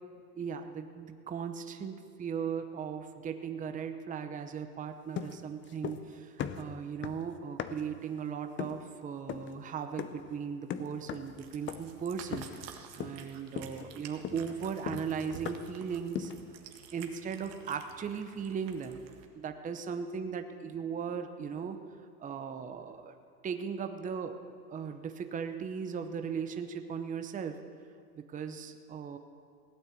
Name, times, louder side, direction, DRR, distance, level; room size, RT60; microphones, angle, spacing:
voice 1, 0.4-16.3 16.9-19.0 19.3-21.8 22.2-23.1 23.4-24.3 24.7-27.6 28.1-29.2, right 6 dB, 15° right, 7 dB, 0.7 m, -37 dB
sound 1, 5.2-6.1 6.4-8.0 8.6-8.9 9.3-9.6 10.0-10.3 10.7-11.4 11.7-12.0 12.3-12.7 13.0-13.3 13.6-15.8 16.2-16.5, left 9 dB, 25° left, 0.6 m, -39 dB
Cat, 11.1-19.2, right 8 dB, 80° right, 1.8 m, -51 dB
17.0 x 9.0 x 8.2 m, 2.2 s
supercardioid pair, 125°, 49 cm